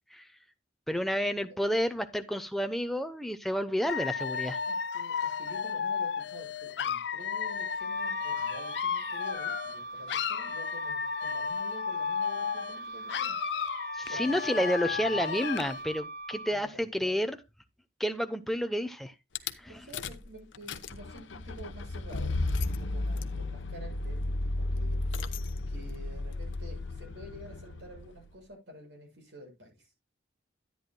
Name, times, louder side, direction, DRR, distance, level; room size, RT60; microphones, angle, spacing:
voice 1, 0.9-4.6 13.9-17.4 18.0-19.1 19.6-19.9, equal, ahead, 0.7 m, -30 dB
Dog / Alarm, 3.9-9.8 10.1-12.8 13.1-15.8, left 6 dB, 65° left, 0.5 m, -33 dB
voice 2, 4.7-13.4 14.0-15.5 16.5-17.2 19.7-25.4 25.7-29.9, equal, 75° right, 7.6 m, -49 dB
Wind instrument woodwind instrument, 7.8-16.6, right 2 dB, 55° right, 5.0 m, -41 dB
Rattle / Car / Engine starting, 19.4-19.5 19.9-20.3 20.5-28.3, left 2 dB, 85° left, 0.8 m, -34 dB
13.5 x 9.5 x 2.2 m
head